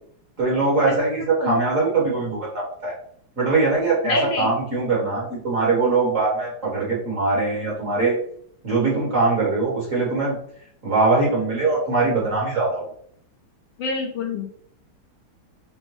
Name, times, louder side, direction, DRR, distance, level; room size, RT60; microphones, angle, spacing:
voice 1, 0.4-2.9 3.4-8.1 8.6-10.4 10.8-12.8, right 3 dB, 45° right, -5 dB, 1.4 m, -22 dB
voice 2, 4.0-4.5 13.8-14.5, left 3 dB, 70° left, 1 dB, 1.2 m, -26 dB
5.3 x 2.1 x 3.1 m, 0.62 s
omnidirectional pair, 2.3 m